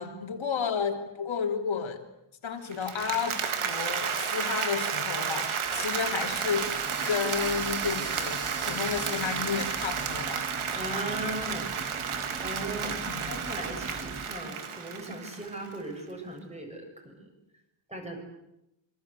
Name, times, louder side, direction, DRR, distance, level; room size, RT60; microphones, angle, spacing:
voice 1, 0.0-2.0 2.4-6.7 7.1-10.5 13.1-13.4, left 6 dB, 70° left, 3 dB, 3.4 m, -32 dB
Applause, 2.7-15.7, right 7 dB, 85° right, 2.8 m, -32 dB
sound 1, 5.6-14.3, right 3 dB, 30° right, 2.3 m, -41 dB
voice 2, 10.7-11.7 12.4-13.0 13.3-17.3 17.9-18.2, right 1 dB, 15° right, 2 dB, 7.3 m, -38 dB
27.5 x 25.0 x 8.3 m, 0.86 s
wide cardioid pair, 160°, 48 cm